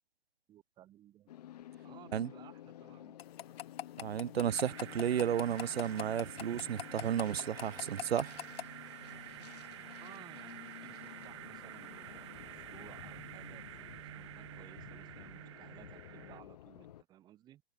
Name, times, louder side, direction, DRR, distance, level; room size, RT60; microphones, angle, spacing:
voice 1, 0.5-1.3 1.8-3.5 10.0-17.6, right 13 dB, 15° right, 2.2 m, -58 dB
sound 1, 1.3-17.0, left 12 dB, 40° left, 1.3 m, -52 dB
sound 2, 3.2-8.6, left 11 dB, 80° left, 0.6 m, -41 dB
voice 2, 4.0-8.3, right 9 dB, 90° right, 1.2 m, -33 dB
sound 3, 4.5-16.4, right 14 dB, 30° right, 0.8 m, -49 dB
hypercardioid pair, 170°, 30 cm